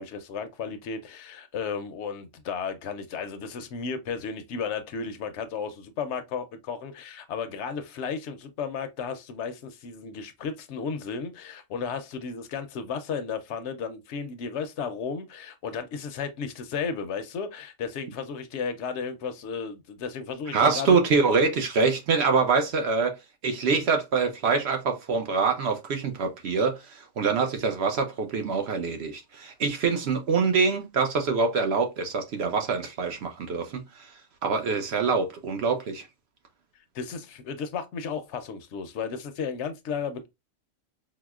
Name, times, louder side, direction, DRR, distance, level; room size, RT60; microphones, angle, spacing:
voice 1, 0.0-21.0 36.9-40.3, left 6 dB, 65° left, 0.8 m, -34 dB
voice 2, 20.5-23.2 23.4-33.8 34.4-36.1, right 4 dB, 60° right, 0.8 m, -25 dB
4.7 x 2.0 x 2.3 m
omnidirectional pair, 1.4 m